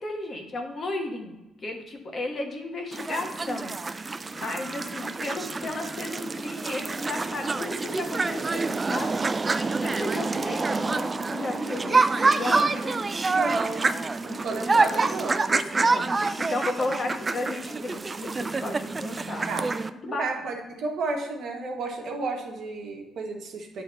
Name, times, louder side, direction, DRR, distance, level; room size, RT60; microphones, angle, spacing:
voice 1, 0.0-3.8 4.3-9.2 9.8-12.7 16.4-19.5 19.8-20.2, left 2 dB, 45° left, 2 dB, 1.3 m, -34 dB
sound 1, 2.9-19.9, right 3 dB, 30° right, 0.3 m, -27 dB
voice 2, 12.5-13.0 13.3-16.2 19.5-19.7 20.1-23.8, right 3 dB, 65° right, 2 dB, 1.2 m, -32 dB
9.1 x 3.5 x 4.3 m, 1.0 s
cardioid pair, 90°, 0 cm